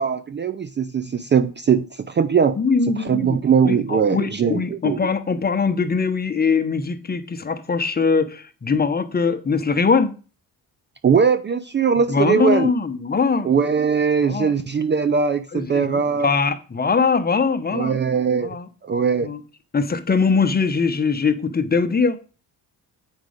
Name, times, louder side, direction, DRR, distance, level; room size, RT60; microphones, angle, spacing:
voice 1, 0.0-2.6 2.9-5.1 11.0-12.7 13.4-16.3 17.7-18.6 18.8-19.3, right 6 dB, 30° right, 0.4 m, -20 dB
voice 2, 2.6-3.4 3.6-10.1 12.1-13.5 14.2-14.5 15.5-15.9 16.2-18.0 18.4-18.7 19.2-19.4 19.7-22.2, left 5 dB, 25° left, 0.9 m, -21 dB
8.1 x 5.2 x 5.0 m
cardioid pair, 95°, 39 cm